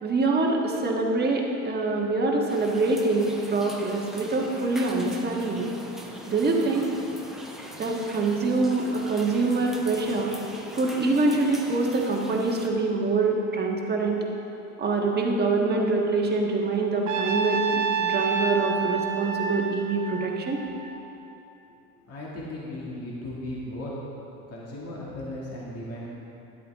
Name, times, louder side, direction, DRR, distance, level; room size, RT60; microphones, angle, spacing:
voice 1, 0.0-5.7 6.3-6.9 7.8-10.3 10.7-14.2 14.8-20.6, right 3 dB, 25° right, -1 dB, 1.5 m, -25 dB
sound 1, 2.5-12.7, right 1 dB, ahead, 0.9 m, -42 dB
Trumpet, 17.1-21.3, right 5 dB, 50° right, 1.1 m, -29 dB
voice 2, 22.1-23.9 24.5-26.1, left 1 dB, 35° left, -5 dB, 2.3 m, -36 dB
12.0 x 8.0 x 3.6 m, 2.9 s
supercardioid pair, 105°, 40 cm